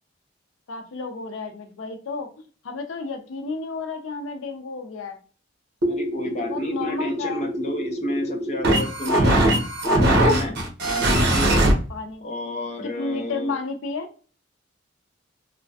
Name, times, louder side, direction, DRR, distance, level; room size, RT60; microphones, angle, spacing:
voice 1, 0.7-5.2 6.2-7.5 11.9-12.2 12.8-14.1, left 4 dB, 80° left, 6 dB, 0.5 m, -32 dB
sound 1, 5.8-11.7, right 1 dB, 55° right, 0.8 m, -21 dB
voice 2, 5.9-9.4 9.8-10.6 10.9-11.7 12.2-13.6, left 1 dB, 35° left, 2 dB, 0.6 m, -31 dB
3.2 x 2.1 x 2.6 m, 0.39 s
head